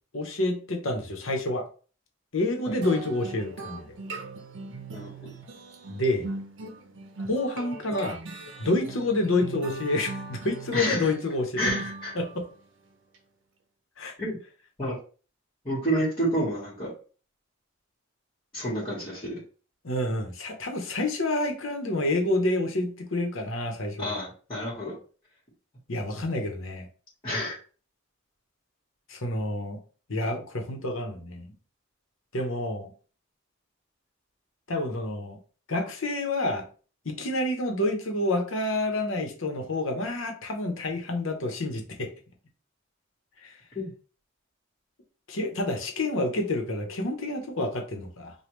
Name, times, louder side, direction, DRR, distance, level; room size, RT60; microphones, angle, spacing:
voice 1, 0.1-1.6 2.3-3.9 5.9-6.3 7.2-8.2 8.6-11.6 12.1-12.5 14.0-14.1 19.8-24.2 25.9-26.9 29.1-29.8 30.1-31.5 32.3-32.9 34.7-35.4 35.7-36.6 37.0-42.1 43.4-43.6 45.3-48.3, left 2 dB, 75° left, 4 dB, 1.0 m, -28 dB
sound 1, 2.8-12.5, right 3 dB, 60° right, 0.7 m, -39 dB
voice 2, 10.7-11.1 11.6-12.2 14.2-14.4 14.8-15.0 15.6-16.9 18.5-19.4 24.0-24.9 27.2-27.6 43.7-43.9, equal, 25° left, -6 dB, 1.5 m, -29 dB
5.1 x 2.4 x 3.1 m, 0.38 s
head